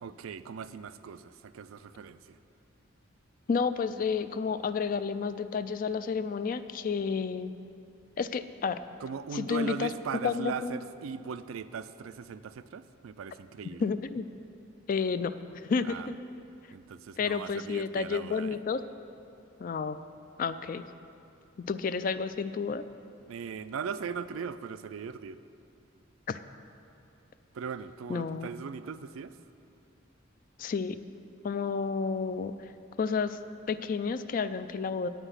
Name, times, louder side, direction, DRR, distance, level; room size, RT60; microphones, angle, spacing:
voice 1, 0.0-2.4 9.0-13.9 15.8-16.1 16.7-18.6 23.3-25.4 27.5-29.4, right 6 dB, 85° right, 13 dB, 0.4 m, -39 dB
voice 2, 3.5-7.5 8.2-8.8 9.3-9.9 10.2-10.7 13.8-14.3 14.9-15.3 15.7-16.1 17.2-18.8 19.6-20.0 20.4-20.9 21.6-22.9 26.3-26.4 28.1-28.5 30.6-31.0 31.4-32.7 33.0-33.4 33.7-35.1, left 5 dB, 40° left, 12 dB, 0.3 m, -31 dB
9.0 x 5.9 x 8.0 m, 2.7 s
head